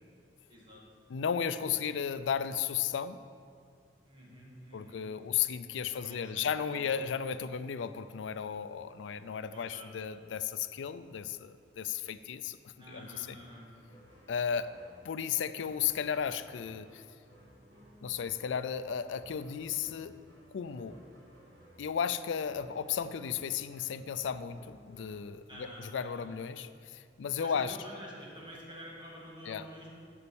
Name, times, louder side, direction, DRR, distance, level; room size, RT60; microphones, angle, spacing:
voice 1, 0.5-0.8 4.0-5.1 5.8-7.1 9.5-9.9 12.8-13.7 25.5-26.3 27.3-29.9, equal, 25° right, -4 dB, 2.0 m, -49 dB
voice 2, 1.1-3.2 4.7-12.6 12.9-13.4 14.3-14.7 15.0-17.0 18.0-20.2 20.5-21.0 21.8-27.8 29.5-29.7, left 7 dB, 85° left, 13 dB, 0.4 m, -34 dB
sound 1, 13.1-25.2, equal, 80° right, 2.4 m, -58 dB
8.5 x 5.3 x 7.0 m, 2.2 s
head